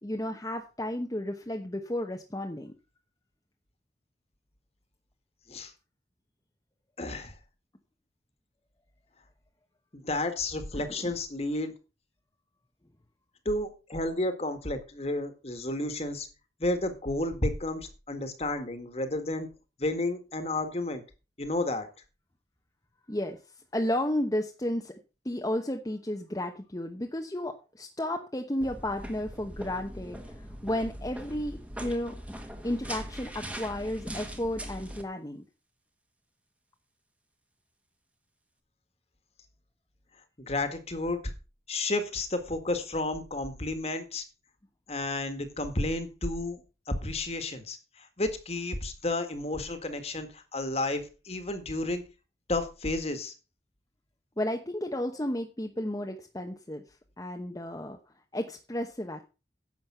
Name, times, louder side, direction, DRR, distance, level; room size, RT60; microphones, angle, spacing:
voice 1, 0.0-2.7 11.0-11.1 23.1-23.4 23.7-24.9 25.2-32.2 32.6-35.4 54.4-56.8 57.2-58.0 58.3-59.2, left 1 dB, 20° left, 3 dB, 1.0 m, -33 dB
voice 2, 7.0-7.3 9.9-11.7 13.4-16.3 16.6-19.5 19.8-21.0 21.4-21.9 40.4-41.3 41.7-44.2 44.9-46.6 46.9-52.0 52.5-53.3, left 2 dB, 35° left, 8 dB, 1.8 m, -31 dB
sound 1, 28.6-35.0, equal, 10° right, 1.4 m, -41 dB
11.0 x 7.4 x 5.6 m, 0.31 s
head